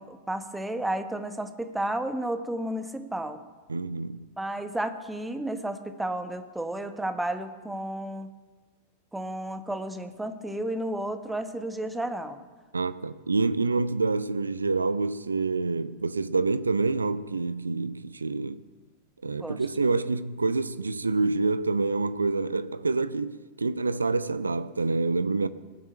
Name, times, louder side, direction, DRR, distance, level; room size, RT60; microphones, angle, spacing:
voice 1, 0.0-3.4 4.4-8.3 9.1-12.4 19.4-19.6, right 1 dB, 5° right, 1.3 m, -32 dB
voice 2, 3.7-4.2 12.7-18.6 19.2-25.5, right 3 dB, 75° right, 0.5 m, -27 dB
19.0 x 8.0 x 8.8 m
figure-of-eight pair, 90°, 0 cm